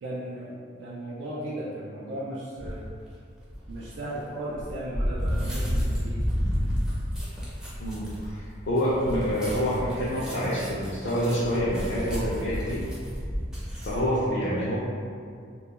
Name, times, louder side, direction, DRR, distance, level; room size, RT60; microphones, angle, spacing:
voice 1, 0.0-2.8 3.7-6.2, right 1 dB, 80° right, -6 dB, 0.4 m, -36 dB
sound 1, 2.6-2.9 3.5-14.0, equal, 5° right, 0.4 m, -31 dB
voice 2, 7.8-12.8 13.8-14.8, equal, 70° left, -9 dB, 0.4 m, -27 dB
2.2 x 2.2 x 2.8 m, 2.3 s
head